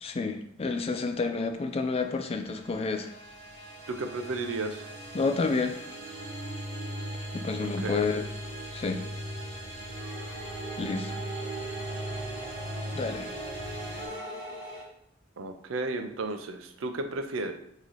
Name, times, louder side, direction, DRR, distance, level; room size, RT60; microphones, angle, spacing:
voice 1, 0.0-3.1 5.1-5.8 7.3-8.2 8.7-9.0 10.8-11.1 12.9-13.3, left 4 dB, 30° left, 6 dB, 0.4 m, -29 dB
sound 1, 1.8-14.1, equal, 35° right, 1.3 m, -39 dB
voice 2, 3.9-4.9 7.8-8.0 15.4-17.5, right 2 dB, 75° right, 6 dB, 0.5 m, -33 dB
sound 2, 9.9-14.8, right 2 dB, 10° right, 1.1 m, -40 dB
3.7 x 3.1 x 4.1 m, 0.70 s
head